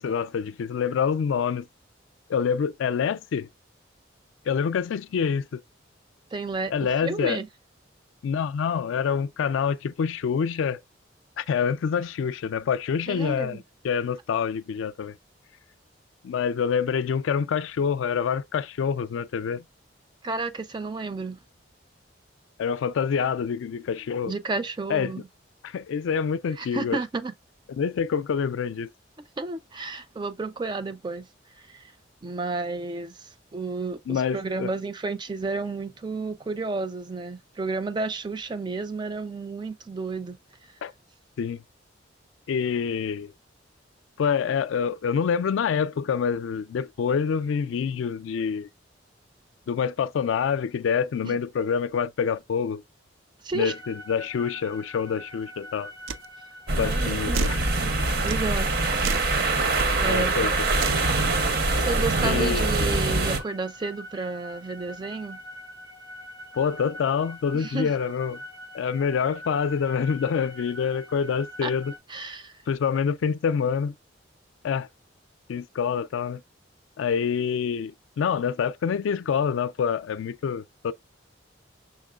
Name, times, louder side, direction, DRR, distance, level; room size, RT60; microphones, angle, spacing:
voice 1, 0.0-1.7 2.3-3.5 4.5-5.6 6.7-7.4 8.2-10.8 11.4-15.2 16.2-19.6 22.6-24.3 24.9-25.1 25.6-27.0 27.7-28.9 34.1-34.7 40.8-40.9 41.4-41.6 42.5-43.3 44.2-48.7 49.7-52.8 53.5-55.9 56.7-57.6 59.0-59.1 60.0-60.7 62.2-62.7 66.5-68.4 68.7-71.9 72.7-73.9 74.6-74.9 75.5-76.4 77.0-80.9, left 6 dB, 80° left, 0.3 m, -26 dB
voice 2, 6.3-7.5 13.1-13.6 20.2-21.4 24.3-25.3 26.6-27.3 29.4-31.3 31.6-31.9 32.2-40.4 51.2-51.3 53.4-53.7 56.8-57.5 58.2-58.7 60.0-60.7 61.7-65.4 67.5-67.9 71.6-71.7 72.1-72.5, right 3 dB, 25° right, 0.3 m, -31 dB
sound 1, 53.6-72.0, equal, 75° right, 1.8 m, -44 dB
sound 2, 56.1-56.3 57.3-57.6 58.3-58.5 59.0-59.3 59.7-59.9 60.8-61.1, right 5 dB, 90° right, 0.4 m, -30 dB
sound 3, 56.7-63.4, right 2 dB, 50° right, 0.7 m, -24 dB
5.7 x 3.7 x 2.3 m
head